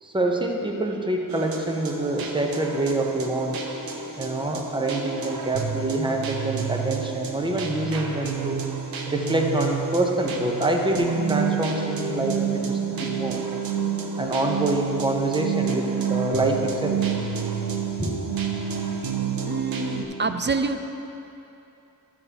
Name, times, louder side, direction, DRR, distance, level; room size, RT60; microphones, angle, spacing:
voice 1, 0.0-3.6 4.2-8.7 9.1-13.4 14.2-17.0 18.0-18.1, right 2 dB, 15° right, 2 dB, 0.9 m, -26 dB
sound 1, 1.3-20.0, right 7 dB, 85° right, 0.7 m, -29 dB
voice 2, 19.5-20.8, right 4 dB, 30° right, 8 dB, 0.4 m, -26 dB
12.0 x 6.8 x 3.0 m, 2.9 s
cardioid pair, 50°, 34 cm